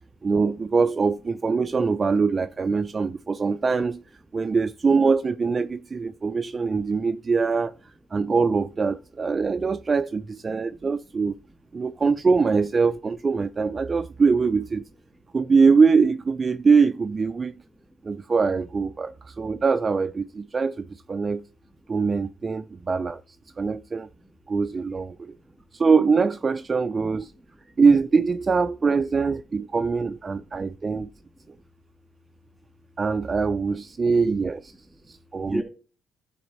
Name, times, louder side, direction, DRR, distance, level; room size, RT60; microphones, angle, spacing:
voice 1, 0.2-4.0 4.3-7.7 8.1-11.3 11.7-14.8 15.3-17.5 18.0-21.4 21.9-23.2 23.6-24.1 24.5-25.4 25.7-27.3 27.8-31.1 33.0-34.7 35.1-35.6, right 4 dB, 35° right, 0.4 m, -23 dB
voice 2, 2.8-3.7 4.4-4.6 6.0-6.3 6.9-7.0 10.7-10.8 11.0-11.2 11.8-11.9 17.6-18.0 19.0-19.1 22.4-22.6 23.5-23.6 24.2-24.3 25.1-25.6 27.0-27.6 30.3-30.7 31.4-31.6 33.6-34.1 34.8-35.6, equal, 5° left, 2.6 m, -42 dB
12.0 x 4.1 x 4.2 m
cardioid pair, 90°, 0 cm